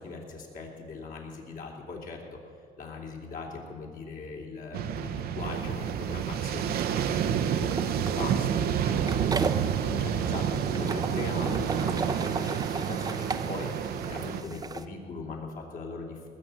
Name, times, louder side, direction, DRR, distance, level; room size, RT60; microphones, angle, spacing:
voice 1, 0.0-2.2 2.8-13.7 14.0-16.3, left 4 dB, 55° left, 0 dB, 3.1 m, -40 dB
sound 1, 4.7-14.4, right 8 dB, 65° right, 0.8 m, -29 dB
sound 2, 5.5-14.8, right 3 dB, 20° right, 0.7 m, -37 dB
19.0 x 6.9 x 8.9 m, 2.3 s
cardioid pair, 110°, 17 cm